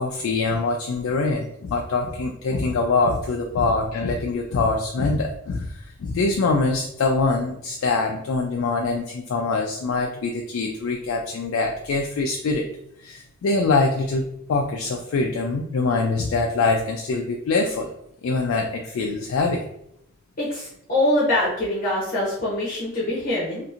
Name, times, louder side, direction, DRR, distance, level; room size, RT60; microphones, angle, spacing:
voice 1, 0.0-12.7 13.0-17.9 18.2-19.7, left 3 dB, 70° left, 2 dB, 0.3 m, -24 dB
voice 2, 20.4-23.6, left 1 dB, 40° left, -7 dB, 0.7 m, -24 dB
2.7 x 2.5 x 2.4 m, 0.76 s
head